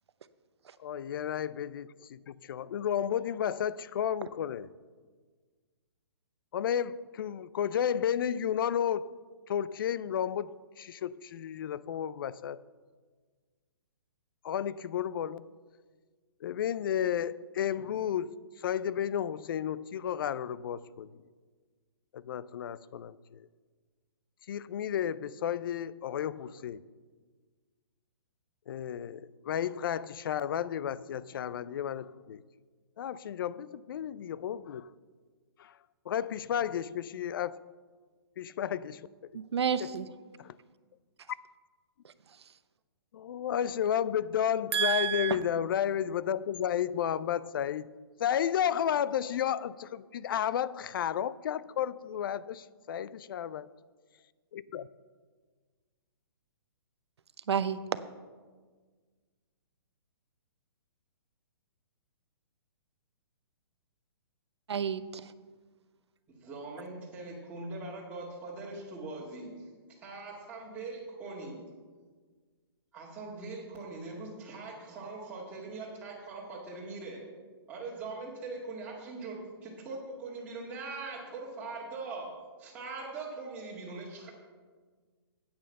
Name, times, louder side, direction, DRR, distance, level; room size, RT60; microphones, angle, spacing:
voice 1, 0.8-4.7 6.5-9.2 9.5-12.6 14.4-15.5 16.4-21.2 22.1-23.4 24.5-26.8 28.7-32.4 33.0-34.9 35.6-35.7 36.1-37.7 38.4-39.1 39.8-39.9 40.4-40.5 43.1-47.9 48.2-53.7 54.5-54.9, left 9 dB, 55° left, 0.4 m, -32 dB
voice 2, 39.3-40.1 44.7-45.4 57.5-57.8 64.7-65.3, right 7 dB, 80° right, 0.7 m, -30 dB
voice 3, 66.3-69.5 69.9-71.6 72.9-77.2 77.7-82.3 82.6-84.3, right 3 dB, 10° right, 2.0 m, -41 dB
8.9 x 8.8 x 6.5 m
hypercardioid pair, 150°, 14 cm